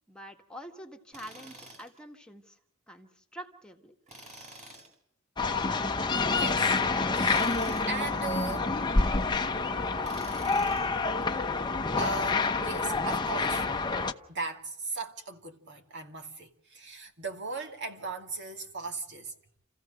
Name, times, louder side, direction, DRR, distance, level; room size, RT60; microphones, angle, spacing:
voice 1, 0.1-2.6 2.9-4.0, equal, 5° left, 1.7 m, -46 dB
Tools, 1.1-2.0 4.1-4.9 7.1-8.0 10.0-11.0, right 2 dB, 35° right, 6.5 m, -48 dB
sound 1, 5.4-14.1, left 3 dB, 20° left, 0.9 m, -28 dB
voice 2, 5.6-6.0 6.3-6.8 7.1-8.7 12.0-13.6 14.3-19.3, right 3 dB, 55° right, 2.5 m, -38 dB
29.5 x 15.5 x 6.6 m
head